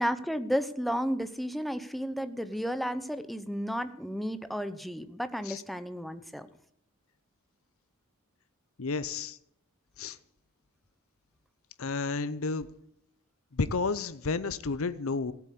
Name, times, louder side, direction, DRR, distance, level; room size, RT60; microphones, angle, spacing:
voice 1, 0.0-6.5, equal, ahead, 11 dB, 0.8 m, -32 dB
voice 2, 8.8-9.4 10.0-10.2 11.8-12.7 13.5-15.3, left 4 dB, 70° left, 13 dB, 0.7 m, -31 dB
15.5 x 8.3 x 8.4 m, 0.73 s
head